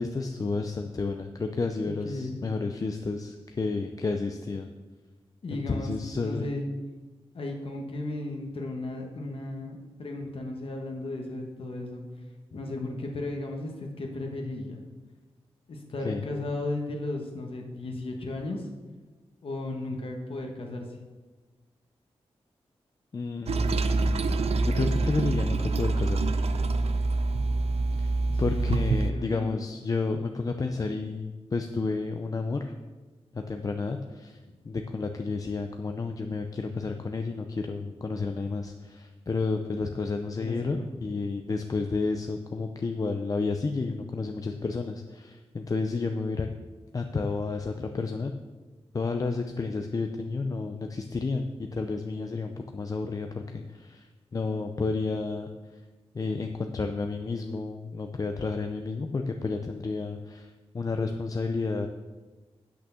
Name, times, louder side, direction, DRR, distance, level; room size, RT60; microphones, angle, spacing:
voice 1, 0.0-4.7 5.5-6.5 16.0-16.2 23.1-24.3 24.6-26.3 28.0-28.1 28.4-32.7 33.3-34.4 34.6-46.5 46.9-48.3 48.9-55.5 56.1-61.9, left 4 dB, 35° left, 5 dB, 0.5 m, -31 dB
voice 2, 2.0-2.4 5.4-5.9 6.2-6.7 7.3-12.0 12.5-14.9 15.7-18.7 19.4-20.9 28.3-28.8 29.1-29.5 34.5-34.6 40.4-41.0, left 2 dB, 60° left, 1 dB, 1.3 m, -35 dB
Toilet flush, 23.5-29.1, right 3 dB, 75° right, 0.6 m, -26 dB
8.5 x 6.3 x 7.0 m, 1.3 s
wide cardioid pair, 170°, 11 cm